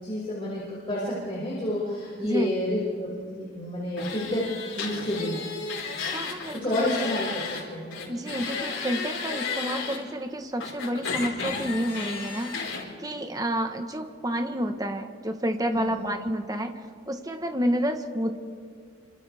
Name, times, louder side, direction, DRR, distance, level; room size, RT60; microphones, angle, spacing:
voice 1, 0.0-5.4 6.5-8.1 15.7-16.0, left 1 dB, 30° left, -8 dB, 5.8 m, -30 dB
sound 1, 4.0-7.6 7.9-10.0 10.6-12.8, left 5 dB, 90° left, 4.8 m, -33 dB
voice 2, 6.1-6.9 8.1-16.8 17.1-18.4, equal, 20° right, 6 dB, 1.2 m, -30 dB
28.5 x 26.0 x 3.5 m, 2.1 s
head